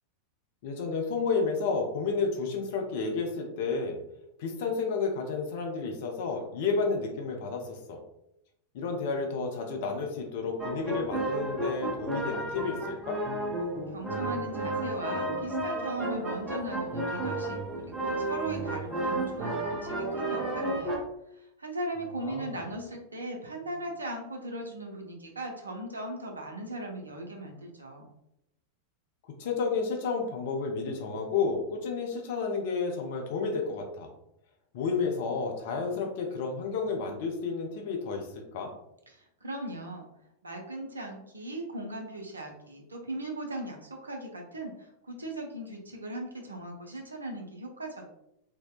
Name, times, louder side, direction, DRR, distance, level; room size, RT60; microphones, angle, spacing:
voice 1, 0.6-4.0 4.4-8.0 8.7-13.2 22.2-22.6 29.4-34.1 34.7-38.7, left 4 dB, 50° left, 2 dB, 0.5 m, -31 dB
sound 1, 10.6-21.0, right 2 dB, 10° right, 0.6 m, -32 dB
voice 2, 13.9-21.0 21.3-28.1 39.1-40.1 40.4-48.1, right 1 dB, 75° right, 2 dB, 0.4 m, -38 dB
2.6 x 2.1 x 2.3 m, 0.83 s
figure-of-eight pair, 90°, 0 cm